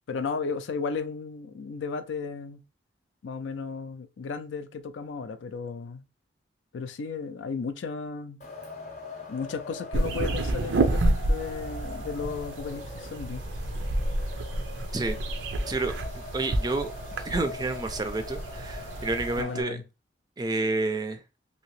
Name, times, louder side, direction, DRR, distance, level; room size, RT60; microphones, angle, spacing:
voice 1, 0.1-2.6 3.2-6.1 6.7-8.4 9.3-13.4 19.4-19.8, left 5 dB, 85° left, 0.4 m, -34 dB
Wind, 8.4-19.6, left 2 dB, 40° left, 0.7 m, -42 dB
sound 1, 9.9-19.4, right 2 dB, 90° right, 0.5 m, -30 dB
voice 2, 15.7-16.9 17.2-19.8 20.4-21.2, right 3 dB, 20° right, 0.4 m, -30 dB
2.8 x 2.8 x 3.0 m
head